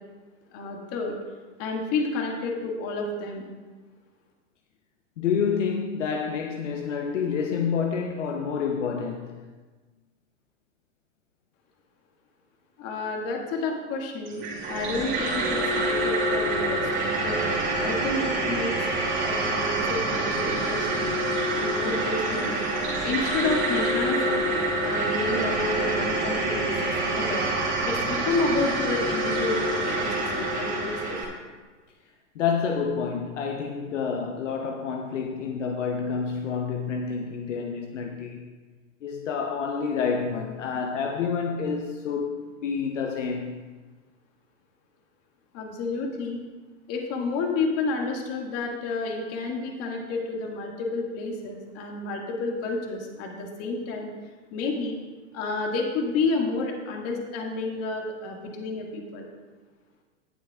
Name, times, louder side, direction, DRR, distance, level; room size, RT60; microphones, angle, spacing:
voice 1, 0.5-1.2 1.6-3.5 12.8-18.7 19.2-21.1 21.5-22.5 23.0-24.5 24.8-27.5 27.9-31.2 45.5-46.4 46.9-54.1 54.5-55.0 55.3-59.3, left 3 dB, 40° left, 2.1 m, -30 dB
voice 2, 5.2-9.3 32.3-38.4 39.0-43.5, left 6 dB, 75° left, 0.9 m, -28 dB
sound 1, 14.3-31.2, right 2 dB, 30° right, 2.4 m, -26 dB
18.0 x 7.4 x 2.5 m
hypercardioid pair, 110°, 37 cm